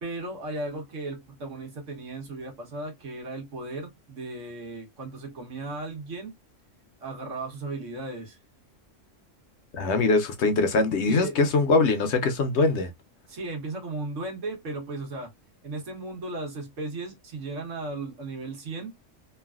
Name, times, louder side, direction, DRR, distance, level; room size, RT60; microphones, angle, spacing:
voice 1, 0.0-6.3 7.0-8.4 11.1-11.4 13.3-15.3 15.6-18.9, right 2 dB, 75° right, 1.4 m, -36 dB
voice 2, 9.7-12.9, left 3 dB, 65° left, 0.9 m, -22 dB
3.2 x 2.4 x 2.3 m
omnidirectional pair, 1.3 m